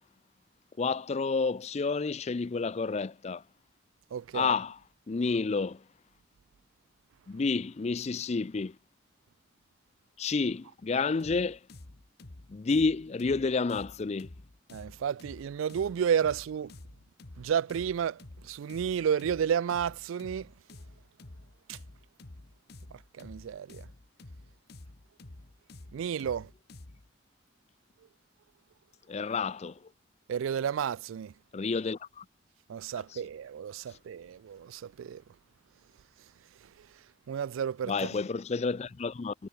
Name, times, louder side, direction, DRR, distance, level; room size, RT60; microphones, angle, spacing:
voice 1, 0.8-3.4 4.3-4.8 5.1-5.8 7.3-8.8 10.2-11.6 12.5-14.3 29.1-29.8 31.5-32.2 33.1-33.2 37.8-39.3, left 4 dB, 35° left, 0.4 m, -30 dB
voice 2, 4.1-4.5 14.7-16.7 17.4-18.2 18.4-20.5 21.7-21.8 23.2-23.8 25.9-26.5 30.3-31.3 32.7-35.2 37.3-38.1, right 8 dB, 90° right, 0.3 m, -31 dB
sound 1, 11.2-27.1, left 2 dB, 55° left, 1.3 m, -50 dB
head